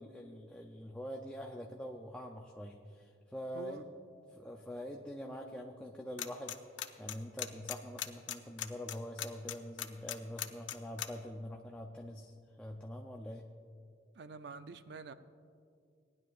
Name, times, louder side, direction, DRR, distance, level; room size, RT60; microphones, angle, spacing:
voice 1, 0.0-3.9 4.3-6.6 7.0-13.5, equal, 5° left, 1 dB, 0.5 m, -44 dB
sound 1, 6.2-6.5 6.8-11.1, left 11 dB, 85° left, 0.6 m, -38 dB
voice 2, 14.2-15.1, right 4 dB, 65° right, 11 dB, 0.5 m, -47 dB
18.5 x 10.5 x 2.5 m, 2.3 s
head